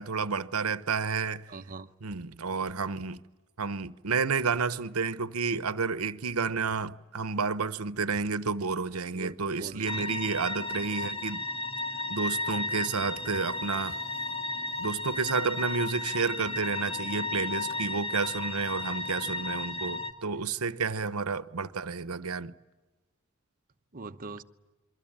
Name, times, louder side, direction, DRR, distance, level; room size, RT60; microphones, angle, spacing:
voice 1, 0.0-1.5 2.0-3.2 3.6-11.4 12.1-14.0 14.8-22.5, right 5 dB, 85° right, 1.0 m, -30 dB
voice 2, 1.5-1.9 9.1-10.1 17.7-17.8 20.3-20.5 23.9-24.4, right 3 dB, 40° right, 1.0 m, -42 dB
sound 1, 9.9-20.1, left 2 dB, 30° left, 2.4 m, -34 dB
27.5 x 24.0 x 8.8 m
head